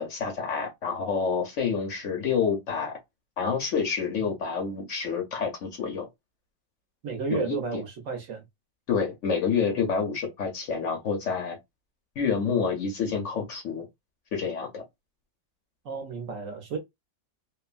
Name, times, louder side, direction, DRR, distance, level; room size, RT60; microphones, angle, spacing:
voice 1, 0.0-3.0 3.4-6.1 7.3-7.6 8.9-11.6 12.2-13.9 14.3-14.8, left 6 dB, 65° left, 0.7 m, -28 dB
voice 2, 7.0-8.4 15.8-16.8, right 5 dB, 60° right, 0.9 m, -32 dB
2.9 x 2.2 x 2.4 m
omnidirectional pair, 2.0 m